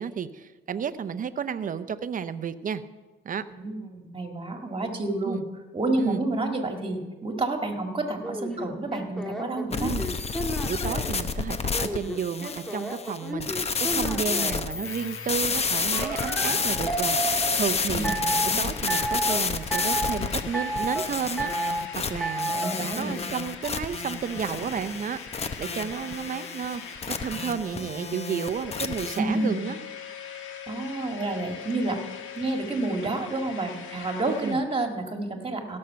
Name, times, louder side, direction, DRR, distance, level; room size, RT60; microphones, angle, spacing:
voice 1, 0.0-2.8 3.2-3.4 5.2-5.4 6.0-6.2 9.8-10.1 10.7-18.2 18.6-22.5 22.8-25.2 25.6-29.8 34.4-34.6, right 7 dB, 45° right, 12 dB, 0.7 m, -32 dB
voice 2, 3.6-5.4 5.7-10.0 17.9-18.6 22.5-23.1 29.2-29.6 30.7-32.0 32.4-35.8, right 2 dB, 25° right, 4 dB, 1.9 m, -29 dB
sound 1, 8.2-11.2 11.7-14.7 15.9-17.6 18.0-18.5 18.9-19.4 19.7-20.2 20.5-21.1 21.4-21.8 22.2-22.7, right 2 dB, ahead, 1.5 m, -31 dB
sound 2, 9.7-29.2, left 5 dB, 30° left, 0.8 m, -30 dB
sound 3, 14.8-34.5, left 7 dB, 80° left, 1.4 m, -42 dB
17.0 x 6.5 x 5.7 m, 1.2 s
cardioid pair, 90°, 20 cm